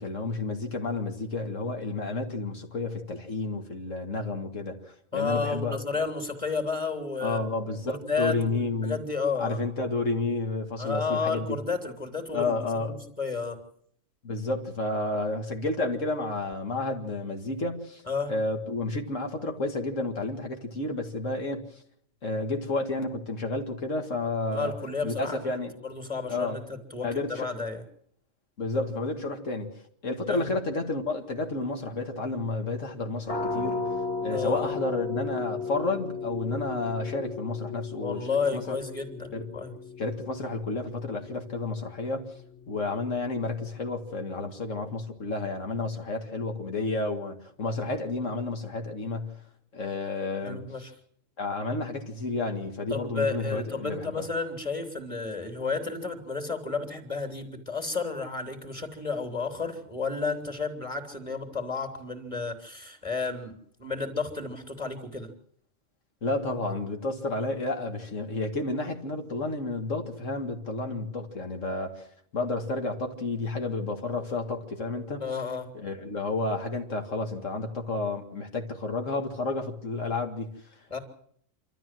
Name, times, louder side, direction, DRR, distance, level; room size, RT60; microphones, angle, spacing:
voice 1, 0.0-5.8 7.2-9.0 9.4-11.6 12.3-13.0 14.2-18.0 18.3-21.7 22.2-24.7 25.0-25.7 26.3-26.6 27.0-27.5 28.6-29.7 30.0-33.9 34.2-38.8 39.3-39.5 40.0-42.3 42.7-49.3 49.7-50.6 51.4-54.3 66.2-72.1 72.3-75.2 75.7-80.5, left 2 dB, 80° left, 2.4 m, -31 dB
voice 2, 5.1-9.6 10.8-13.6 18.1-18.3 24.5-27.8 30.3-30.5 34.3-34.7 38.0-39.7 50.4-50.9 52.9-65.3 75.2-75.7 80.9-81.0, left 4 dB, 25° left, 3.2 m, -32 dB
sound 1, 33.3-44.8, left 4 dB, 65° left, 1.9 m, -36 dB
27.0 x 13.0 x 7.7 m
omnidirectional pair, 1.3 m